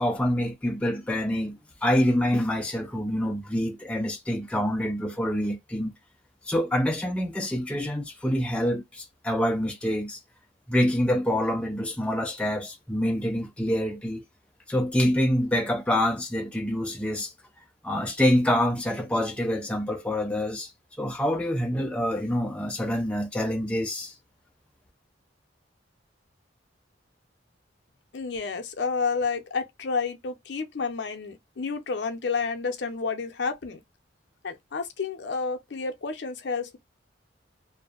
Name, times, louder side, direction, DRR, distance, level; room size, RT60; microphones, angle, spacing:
voice 1, 0.0-5.9 6.4-10.2 10.7-14.2 14.7-17.3 17.8-20.7 21.0-24.1, equal, 5° left, 0.3 m, -26 dB
voice 2, 28.1-33.8 34.4-36.8, left 4 dB, 65° left, 0.5 m, -30 dB
2.6 x 2.0 x 2.3 m
head